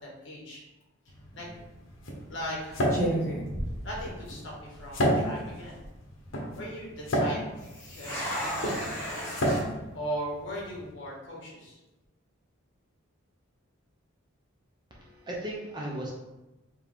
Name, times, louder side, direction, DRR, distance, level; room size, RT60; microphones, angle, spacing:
voice 1, 0.0-0.6 1.3-1.5 2.2-2.7 3.8-5.7 6.5-11.8, equal, 60° left, -3 dB, 1.5 m, -39 dB
sound 1, 1.1-10.9, equal, 75° left, 1.0 m, -32 dB
sound 2, 1.3-1.6 2.4-2.6 2.9-4.5 4.8-4.9 5.5-5.9 7.6-9.6, right 1 dB, 10° left, 1.5 m, -33 dB
voice 2, 14.9-16.1, right 1 dB, 20° right, -3 dB, 0.8 m, -36 dB
4.7 x 3.2 x 3.5 m, 0.98 s
head